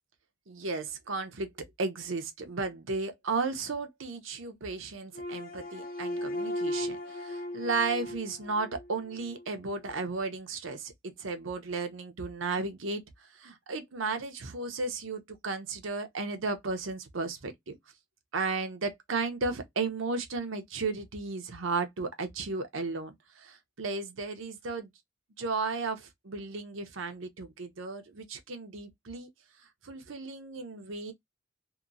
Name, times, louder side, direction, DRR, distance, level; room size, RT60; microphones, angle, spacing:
voice 1, 0.5-1.5 1.8-13.0 13.4-17.8 18.3-24.9 25.4-29.3 29.8-31.1, right 3 dB, 90° right, 0.7 m, -34 dB
sound 1, 5.1-9.4, left 1 dB, 45° left, 0.6 m, -37 dB
2.9 x 2.2 x 2.4 m
head